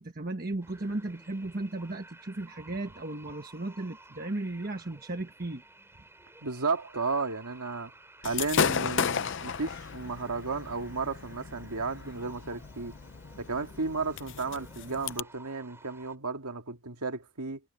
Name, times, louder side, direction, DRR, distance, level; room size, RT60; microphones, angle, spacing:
voice 1, 0.0-5.6, right 2 dB, 40° right, 1.3 m, -35 dB
sound 1, 0.6-16.2, right 2 dB, 10° right, 7.1 m, -54 dB
voice 2, 6.4-7.9 8.2-12.9 13.4-17.6, right 4 dB, 90° right, 2.2 m, -33 dB
Gunshot gunfire / Fireworks, 8.2-15.2, left 6 dB, 55° left, 0.6 m, -34 dB
head